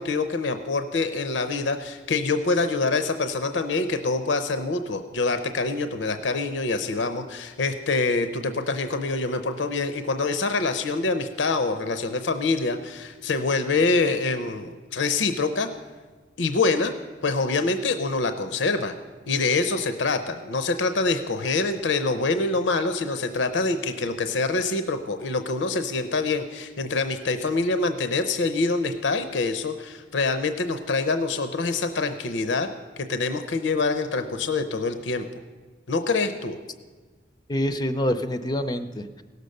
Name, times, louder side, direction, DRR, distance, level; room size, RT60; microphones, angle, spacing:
voice 1, 0.0-15.7 16.4-16.9 17.2-18.9 19.3-35.3 35.9-36.6, left 3 dB, 80° left, 9 dB, 0.6 m, -25 dB
voice 2, 37.5-39.2, equal, 20° left, 9 dB, 0.5 m, -26 dB
17.0 x 6.7 x 6.4 m, 1.4 s
head